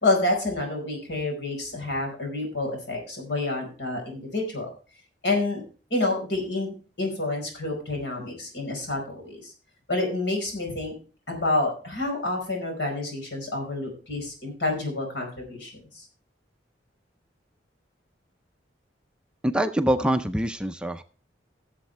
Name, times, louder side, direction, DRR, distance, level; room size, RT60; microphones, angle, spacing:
voice 1, 0.0-4.7 5.2-5.6 5.9-9.5 9.9-10.9 11.3-16.0, left 2 dB, 70° left, 2 dB, 4.7 m, -28 dB
voice 2, 19.4-21.0, right 1 dB, 5° right, 8 dB, 0.4 m, -24 dB
16.0 x 7.4 x 3.3 m, 0.36 s
head